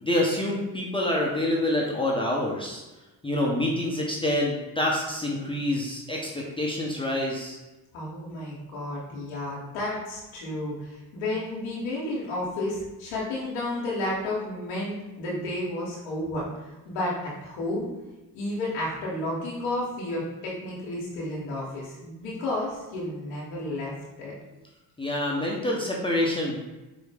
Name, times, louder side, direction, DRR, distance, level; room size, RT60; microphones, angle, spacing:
voice 1, 0.0-2.8 3.2-7.6 25.0-26.6, left 1 dB, 10° left, -3 dB, 0.7 m, -27 dB
voice 2, 7.9-17.9 18.3-23.9 24.2-24.3, left 1 dB, 90° left, -6 dB, 0.9 m, -32 dB
4.7 x 2.0 x 3.3 m, 1.1 s
supercardioid pair, 55°, 47 cm